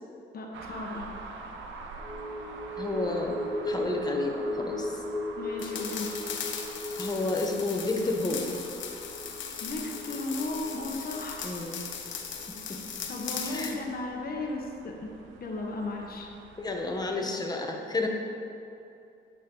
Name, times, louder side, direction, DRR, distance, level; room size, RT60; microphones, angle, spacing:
voice 1, 0.3-1.1 5.4-6.1 9.6-11.4 13.1-15.0 15.4-16.3, left 2 dB, 50° left, 0 dB, 1.3 m, -35 dB
sound 1, 0.5-17.1, right 3 dB, 75° right, 0.9 m, -47 dB
sound 2, 2.0-12.6 12.9-13.1, left 1 dB, 40° right, 2.2 m, -37 dB
voice 2, 2.8-3.4 3.6-4.9 7.0-8.6 11.4-11.8 12.5-12.8 13.3-13.8 16.6-18.1, left 2 dB, 20° left, 1 dB, 1.2 m, -31 dB
sound 3, 5.6-13.8, left 7 dB, 70° left, 1.0 m, -38 dB
9.4 x 6.6 x 3.9 m, 2.6 s
cardioid pair, 90°, 20 cm